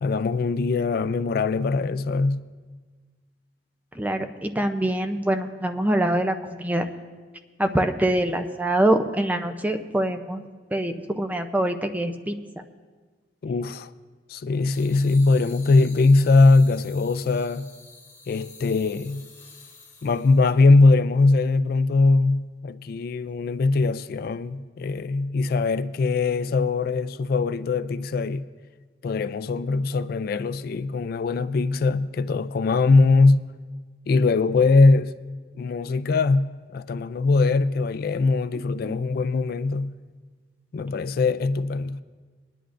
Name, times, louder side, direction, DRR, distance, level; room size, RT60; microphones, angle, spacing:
voice 1, 0.0-2.4 13.4-13.9 14.3-17.7 18.3-19.2 20.0-28.5 29.0-33.5 34.1-35.2 35.5-40.0 40.7-42.0, left 3 dB, 55° left, 0.3 m, -21 dB
voice 2, 3.9-6.9 7.6-10.4 10.7-12.6 38.8-39.0, right 1 dB, 10° right, 0.5 m, -24 dB
sound 1, 14.7-20.5, left 4 dB, 15° left, 3.1 m, -48 dB
21.5 x 10.5 x 2.5 m
head